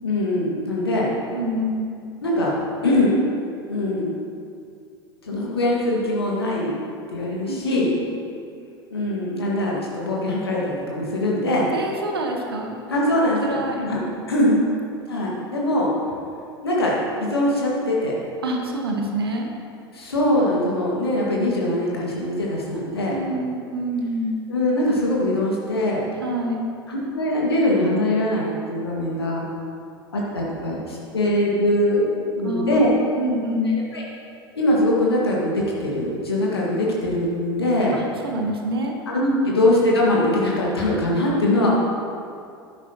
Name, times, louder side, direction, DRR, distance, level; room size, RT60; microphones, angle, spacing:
voice 1, 0.0-1.1 2.2-3.1 3.7-4.2 5.2-6.8 7.1-7.9 8.9-11.7 12.9-14.0 14.3-14.6 15.1-15.9 16.6-18.1 19.9-23.2 24.5-26.0 26.9-29.5 30.1-32.9 33.9-34.0 34.5-38.0 39.1-41.7, left 1 dB, 75° left, -4 dB, 1.9 m, -22 dB
voice 2, 1.3-1.9 7.5-8.2 11.7-12.8 13.4-13.9 14.5-14.7 18.4-19.5 23.1-24.4 26.2-26.7 32.4-33.9 37.9-39.5, right 1 dB, 75° right, 2 dB, 1.2 m, -27 dB
13.0 x 10.0 x 3.0 m, 2.4 s
figure-of-eight pair, 80°, 13 cm